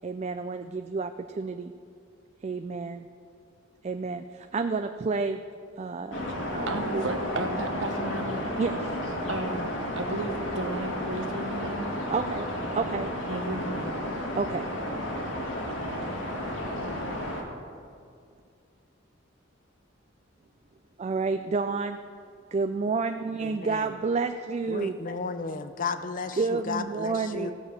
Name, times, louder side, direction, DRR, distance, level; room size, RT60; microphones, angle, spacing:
voice 1, 0.0-1.1 1.4-1.7 2.4-3.1 3.8-5.4 5.8-6.2 6.5-7.0 8.6-8.8 12.1-12.5 12.7-13.1 14.3-14.7 21.0-22.0 22.5-24.9 26.4-27.5, right 4 dB, 35° right, 8 dB, 0.4 m, -29 dB
sound 1, 6.1-17.4, left 1 dB, 70° left, 2.0 m, -32 dB
voice 2, 6.7-8.5 9.3-11.9 13.3-13.9, right 2 dB, 70° right, 5 dB, 1.2 m, -33 dB
voice 3, 23.4-23.9 24.7-27.5, left 4 dB, 45° left, 10 dB, 0.6 m, -34 dB
16.0 x 6.9 x 6.6 m, 2.3 s
head